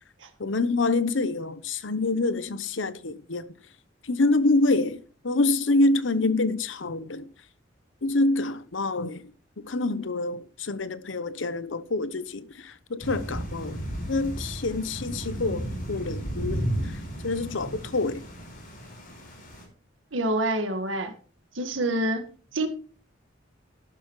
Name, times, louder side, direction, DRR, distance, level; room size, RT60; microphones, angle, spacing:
voice 1, 0.4-3.5 4.0-7.3 8.0-9.3 9.6-13.8 14.1-18.2, left 2 dB, 80° left, 0.9 m, -26 dB
Thunder / Rain, 13.0-19.6, right 1 dB, 45° left, 5.4 m, -34 dB
voice 2, 20.1-21.1 21.6-22.2 22.5-22.7, right 1 dB, 90° right, 1.8 m, -26 dB
13.0 x 12.0 x 3.2 m
head